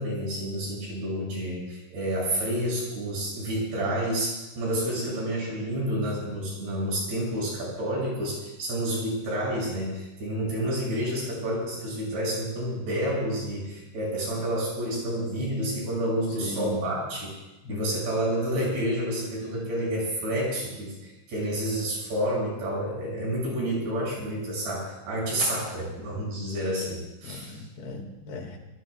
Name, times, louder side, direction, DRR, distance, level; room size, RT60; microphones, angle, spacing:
voice 1, 0.0-17.3 17.7-27.6, right 1 dB, 90° right, -4 dB, 8.6 m, -29 dB
voice 2, 16.4-16.8 17.6-17.8 27.2-28.6, left 2 dB, 85° left, 1 dB, 4.2 m, -37 dB
27.5 x 18.0 x 2.4 m, 1.0 s
omnidirectional pair, 4.5 m